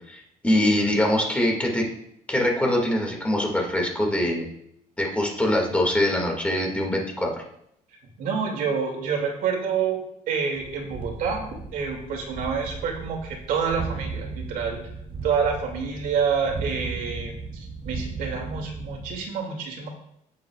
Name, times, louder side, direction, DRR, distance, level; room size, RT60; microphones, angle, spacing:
voice 1, 0.0-1.9 2.3-4.5 5.0-7.4, left 1 dB, 10° left, 0 dB, 2.1 m, -23 dB
voice 2, 8.2-10.0 10.3-14.8 15.2-19.9, right 6 dB, 75° right, 1 dB, 2.6 m, -28 dB
sound 1, 10.6-19.2, right 4 dB, 40° right, 0.9 m, -36 dB
16.5 x 7.6 x 2.4 m, 0.76 s
cardioid pair, 140°, 14 cm